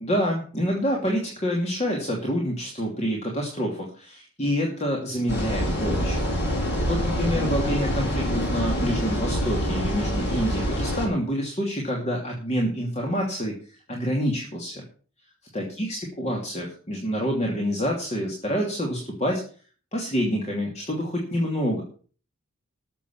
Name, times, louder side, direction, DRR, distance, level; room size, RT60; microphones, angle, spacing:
voice 1, 0.0-6.2 6.9-14.8 15.5-19.4 19.9-21.8, equal, 30° left, -1 dB, 2.7 m, -27 dB
sound 1, 5.3-11.1, equal, 50° left, 6.4 m, -26 dB
13.0 x 7.4 x 7.1 m, 0.41 s
head